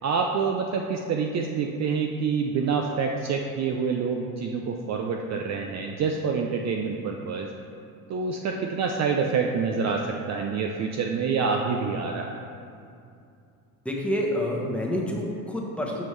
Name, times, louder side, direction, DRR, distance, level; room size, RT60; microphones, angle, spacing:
voice 1, 0.0-7.5 8.1-12.3, right 5 dB, 40° right, 2 dB, 0.5 m, -27 dB
voice 2, 13.8-16.0, equal, 5° left, -2 dB, 1.1 m, -28 dB
7.6 x 5.2 x 3.2 m, 2.5 s
supercardioid pair, 80°, 42 cm